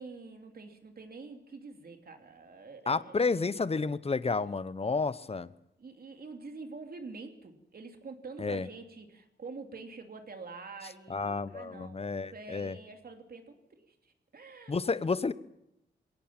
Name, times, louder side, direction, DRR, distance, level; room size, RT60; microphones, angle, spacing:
voice 1, 0.0-3.3 5.8-14.8, right 4 dB, 55° right, 5 dB, 3.0 m, -46 dB
voice 2, 2.9-5.5 8.4-8.7 11.1-12.7 14.7-15.3, left 4 dB, 30° left, 16 dB, 0.9 m, -31 dB
21.5 x 18.0 x 7.4 m, 0.86 s
cardioid pair, 75°, 19 cm